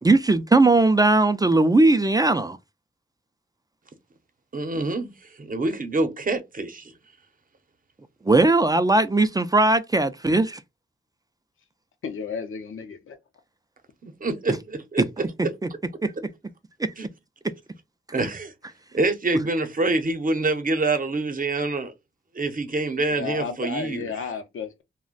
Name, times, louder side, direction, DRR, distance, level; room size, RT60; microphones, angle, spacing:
voice 1, 0.0-2.6 8.3-10.6 16.0-16.1 16.8-16.9, right 2 dB, 20° right, 0.3 m, -19 dB
voice 2, 4.5-5.1 5.4-6.9 14.0-15.5 17.0-17.1 18.1-18.5 18.9-21.9 22.3-24.3, right 2 dB, 45° right, 0.7 m, -26 dB
voice 3, 12.0-13.2 23.1-24.8, left 5 dB, 85° left, 0.6 m, -33 dB
2.4 x 2.1 x 3.7 m
cardioid pair, 70°, 20 cm